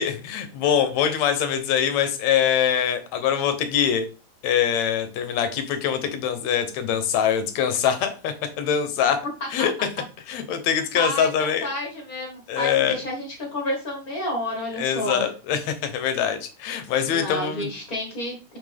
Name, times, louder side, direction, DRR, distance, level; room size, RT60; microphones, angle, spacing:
voice 1, 0.0-4.1 4.4-9.2 9.5-9.7 10.3-11.7 12.5-13.0 14.8-17.7, left 8 dB, 70° left, 8 dB, 1.8 m, -23 dB
voice 2, 10.7-15.3 17.0-18.6, left 1 dB, 40° left, -1 dB, 1.4 m, -30 dB
6.6 x 5.7 x 3.5 m, 0.33 s
omnidirectional pair, 4.1 m